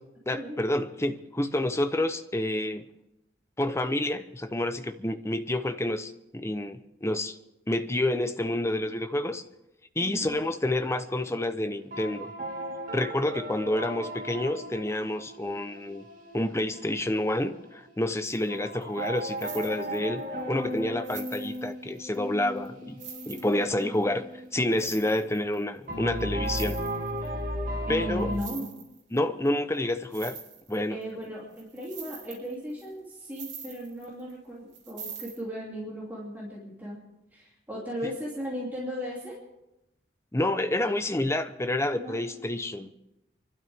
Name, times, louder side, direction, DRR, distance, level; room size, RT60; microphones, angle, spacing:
voice 1, 0.3-2.9 3.6-7.3 7.7-9.4 10.0-12.3 12.9-16.0 16.3-26.8 27.9-28.3 29.1-30.4 30.7-31.0 40.3-42.9, left 1 dB, 15° left, 0.8 m, -29 dB
voice 2, 10.0-10.4 23.5-23.9 27.9-28.7 30.9-37.0 37.3-39.4 41.9-42.2, equal, 10° right, 2.9 m, -36 dB
sound 1, 10.8-11.5 11.9-18.1 18.5-25.1 25.9-28.4, equal, 45° right, 3.0 m, -36 dB
sound 2, 18.2-18.5 18.7-20.2 20.7-20.8 21.0-22.2 22.6-22.7 23.0-24.0 24.6-25.6 25.9-26.0 26.2-27.3 28.2-29.2 29.5-29.6 29.9-31.2 31.5-34.3 34.7-35.4, right 7 dB, 80° right, 2.8 m, -44 dB
29.0 x 12.0 x 3.6 m
head